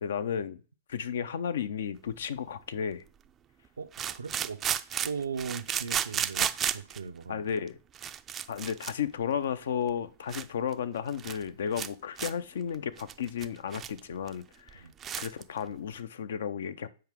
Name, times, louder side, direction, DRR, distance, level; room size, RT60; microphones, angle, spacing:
voice 1, 0.0-0.6 0.9-3.0 7.3-7.8 8.5-14.8 15.2-16.9, left 8 dB, 70° left, 0.6 m, -33 dB
sound 1, 2.1-2.2 3.9-7.0 7.7-7.8 7.9-8.9 9.2-9.4 9.9-10.0 10.3-10.4 10.7-10.8 11.1-11.4 11.7-11.9 12.2-12.3 12.7-14.0 14.3-14.4 14.7-14.8 15.0-15.4, right 9 dB, 25° right, 0.4 m, -33 dB
voice 2, 3.8-4.6 5.0-7.5 14.8-14.9, right 5 dB, 85° right, 0.6 m, -38 dB
7.8 x 4.8 x 3.6 m
hypercardioid pair, 115°, 0 cm